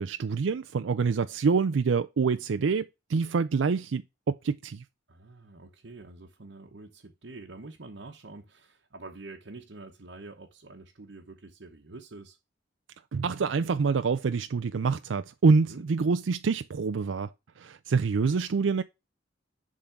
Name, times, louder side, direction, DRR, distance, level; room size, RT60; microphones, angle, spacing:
voice 1, 0.0-4.0 4.3-4.8 13.1-17.3 17.6-18.8, right 5 dB, 85° right, 0.4 m, -26 dB
voice 2, 5.1-12.4 15.6-15.9, right 3 dB, 65° right, 1.0 m, -46 dB
10.5 x 3.8 x 5.8 m
head